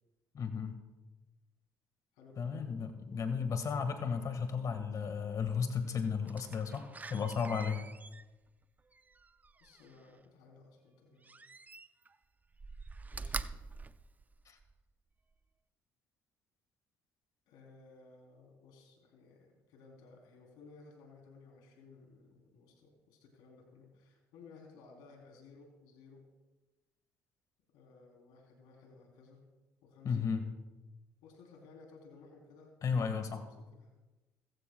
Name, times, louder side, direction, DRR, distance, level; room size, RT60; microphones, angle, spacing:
voice 1, 0.3-0.7 2.4-7.8 14.4-14.6 30.0-30.4 32.8-33.4, left 6 dB, 50° left, 7 dB, 1.7 m, -34 dB
voice 2, 2.1-2.7 9.6-11.4 13.1-13.5 17.5-26.3 27.7-29.4 29.8-30.3 31.2-32.7 33.0-33.9, left 4 dB, 85° left, 0 dB, 3.5 m, -58 dB
Slam, 6.3-10.1 11.2-12.2 12.5-14.8 15.3-15.4, right 3 dB, 20° right, 0.6 m, -46 dB
21.0 x 15.0 x 2.3 m, 1.1 s
supercardioid pair, 80°, 7 cm